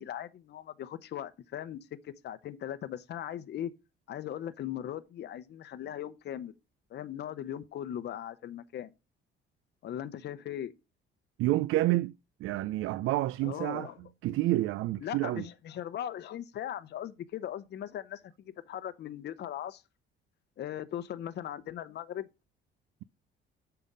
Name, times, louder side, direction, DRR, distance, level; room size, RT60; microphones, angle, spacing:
voice 1, 0.0-3.7 4.1-6.5 6.9-8.9 9.8-10.7 13.4-14.0 15.0-19.8 20.6-22.3, left 10 dB, 55° left, 0.7 m, -39 dB
voice 2, 11.4-12.1 12.4-13.9 14.2-15.4, right 16 dB, 80° right, 0.4 m, -28 dB
7.2 x 5.8 x 5.3 m
cardioid pair, 120°, 21 cm